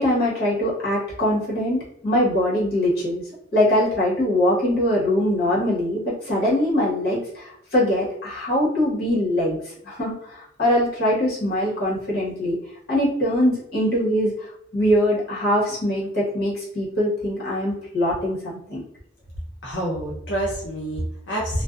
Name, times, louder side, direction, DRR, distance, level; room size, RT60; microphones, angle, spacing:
voice 1, 0.0-3.2 3.5-9.6 9.8-12.6 12.9-14.3 14.7-18.8, left 1 dB, 55° left, -6 dB, 1.1 m, -22 dB
voice 2, 19.6-21.6, right 1 dB, 85° left, -4 dB, 0.7 m, -27 dB
2.5 x 2.1 x 2.3 m, 0.72 s
head